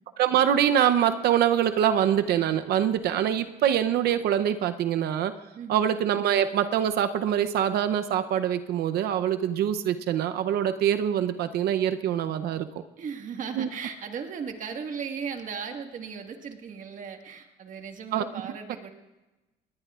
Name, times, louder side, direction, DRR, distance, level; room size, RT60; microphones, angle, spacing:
voice 1, 0.2-5.3 5.7-12.7 13.6-13.7 18.1-18.4, right 10 dB, 70° right, 9 dB, 0.7 m, -24 dB
voice 2, 13.0-18.9, right 6 dB, 50° right, 5 dB, 1.7 m, -37 dB
20.5 x 19.0 x 2.4 m, 1.1 s
cardioid pair, 110°, 17 cm